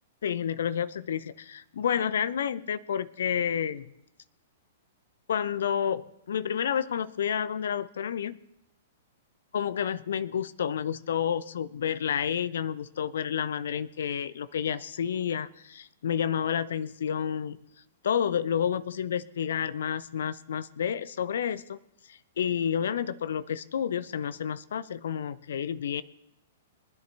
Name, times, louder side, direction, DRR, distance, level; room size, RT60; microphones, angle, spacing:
voice 1, 0.2-3.9 5.3-8.4 9.5-17.6 18.0-21.8 22.1-26.0, left 8 dB, 65° left, 15 dB, 0.6 m, -30 dB
23.0 x 10.5 x 3.4 m, 0.82 s
figure-of-eight pair, 110°, 0 cm